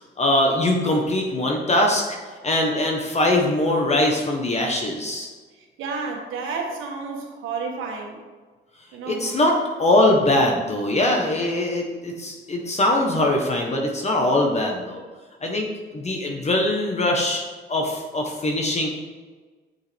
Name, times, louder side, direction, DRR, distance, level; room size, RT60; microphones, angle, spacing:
voice 1, 0.2-2.2 2.4-5.3 9.0-15.0 15.4-17.4 17.7-18.9, left 1 dB, 35° left, 1 dB, 1.2 m, -22 dB
voice 2, 5.8-8.2 8.9-9.3, right 4 dB, 85° right, 1 dB, 1.3 m, -31 dB
6.9 x 6.6 x 3.5 m, 1.4 s
cardioid pair, 90°, 20 cm